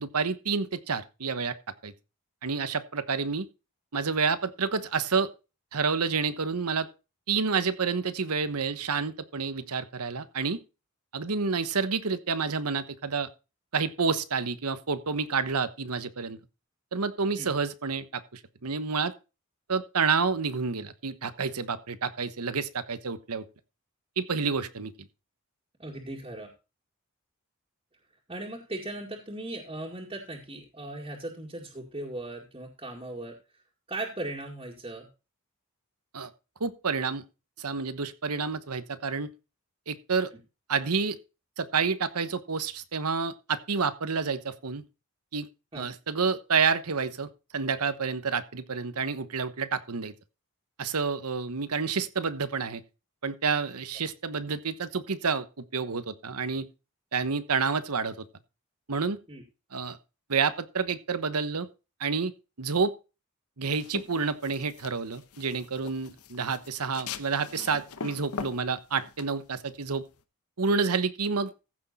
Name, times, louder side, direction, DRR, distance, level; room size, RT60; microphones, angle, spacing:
voice 1, 0.0-1.5 1.8-1.9 2.4-3.5 3.9-5.3 5.7-6.9 7.3-10.6 11.1-13.3 13.7-16.4 16.9-19.1 19.7-23.5 24.2-24.9 36.1-36.3 36.6-37.2 37.6-39.3 39.9-40.3 40.7-41.2 41.6-44.8 45.3-45.5 45.7-50.1 50.8-52.8 53.2-56.7 57.1-58.2 58.9-59.2 59.7-60.0 60.3-61.7 62.0-62.3 62.6-62.9 63.6-70.0 70.6-71.5, right 5 dB, 90° right, 1.1 m, -29 dB
voice 2, 25.8-26.5 28.3-33.4 33.9-35.1 45.7-45.9 59.3-59.4, right 2 dB, 25° right, 2.1 m, -38 dB
sound 1, 63.7-70.2, left 5 dB, 85° left, 1.0 m, -42 dB
15.0 x 6.4 x 4.2 m
head